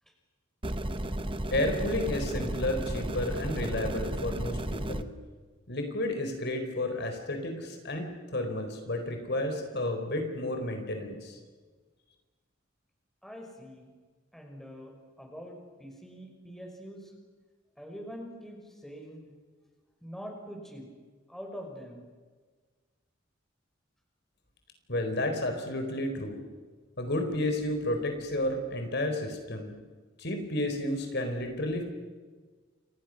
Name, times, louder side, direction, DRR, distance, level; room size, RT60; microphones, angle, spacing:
sound 1, 0.6-5.0, right 1 dB, 25° right, 1.2 m, -33 dB
voice 1, 1.5-5.1 5.7-11.4 24.9-26.4 27.0-29.7 30.2-31.8, left 1 dB, 55° left, 5 dB, 4.1 m, -31 dB
voice 2, 13.2-13.9 14.3-17.1 17.8-19.3 20.0-20.9 21.3-22.0, equal, ahead, 1 dB, 5.7 m, -44 dB
30.0 x 27.0 x 6.4 m, 1.4 s
head